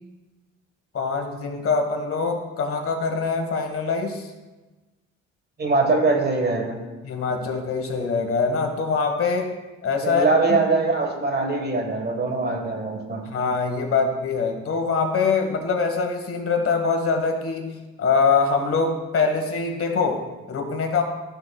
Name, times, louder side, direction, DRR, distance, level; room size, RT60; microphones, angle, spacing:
voice 1, 0.9-4.3 7.0-9.5 9.8-10.6 13.2-21.0, left 4 dB, 50° left, 4 dB, 1.4 m, -24 dB
voice 2, 5.6-6.8 10.0-13.3, right 3 dB, 35° right, 3 dB, 1.5 m, -22 dB
12.5 x 6.2 x 2.3 m, 1.2 s
cardioid pair, 90°, 30 cm